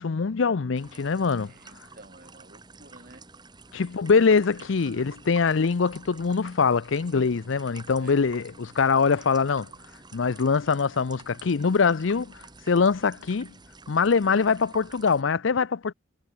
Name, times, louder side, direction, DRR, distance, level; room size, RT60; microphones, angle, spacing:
voice 1, 0.0-1.5 3.7-9.7 10.1-13.5 13.9-15.9, left 5 dB, 70° left, 0.5 m, -23 dB
sound 1, 0.7-15.2, right 3 dB, 20° right, 4.7 m, -49 dB
voice 2, 1.4-3.2 4.8-5.1 8.0-8.2, right 2 dB, 45° right, 4.3 m, -51 dB
head